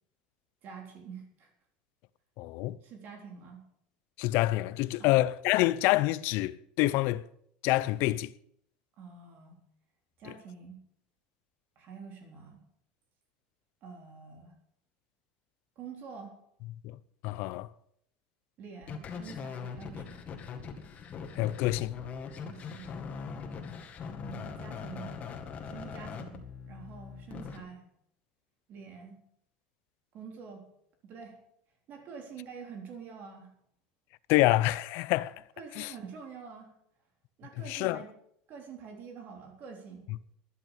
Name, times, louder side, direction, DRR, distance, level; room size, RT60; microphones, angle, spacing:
voice 1, 0.6-1.5 2.8-3.6 5.0-5.2 9.0-9.6 10.2-10.8 11.8-12.6 13.8-14.6 15.8-16.4 18.6-20.3 22.4-22.9 24.2-25.2 25.7-27.9 28.7-29.2 30.1-30.7 31.0-31.4 31.9-33.5 35.6-36.7 37.4-38.1 38.5-40.1, right 6 dB, 50° right, 3.7 m, -46 dB
voice 2, 2.4-2.8 4.2-7.2 7.6-8.3 17.2-17.7 21.4-21.9 34.3-35.3 35.8-35.9 37.7-38.0, left 17 dB, 65° left, 0.6 m, -27 dB
sound 1, 18.8-27.6, left 6 dB, 35° left, 2.0 m, -41 dB
12.5 x 11.0 x 6.8 m
supercardioid pair, 120°, 4 cm